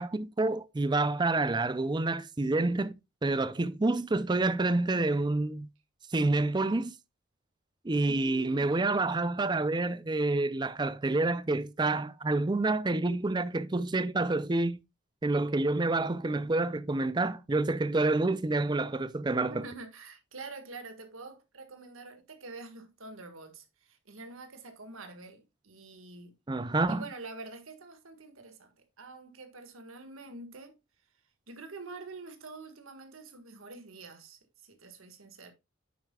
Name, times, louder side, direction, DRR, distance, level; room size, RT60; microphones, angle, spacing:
voice 1, 0.0-2.9 3.2-5.7 6.1-6.9 7.8-14.8 15.2-19.6 26.5-27.0, right 2 dB, 20° right, 0.4 m, -28 dB
voice 2, 8.0-8.7 19.5-26.4 26.9-30.8 31.5-35.5, right 3 dB, 80° right, 1.8 m, -46 dB
9.4 x 7.7 x 2.3 m
head